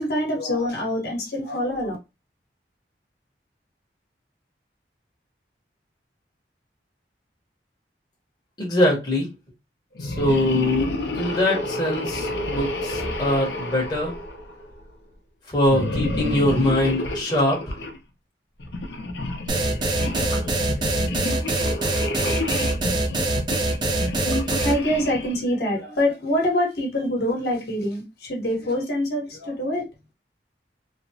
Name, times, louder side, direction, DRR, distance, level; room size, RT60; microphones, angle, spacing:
voice 1, 0.0-2.0 24.1-29.9, left 1 dB, 60° left, 1.0 m, -25 dB
voice 2, 8.6-9.3 10.0-14.2 15.5-17.8, left 1 dB, 25° left, 0.8 m, -23 dB
sound 1, 9.9-14.8 15.6-18.0 18.6-25.4, left 1 dB, 80° left, 0.6 m, -30 dB
sound 2, 19.5-24.7, right 2 dB, 25° right, 0.4 m, -24 dB
3.2 x 2.0 x 2.6 m
head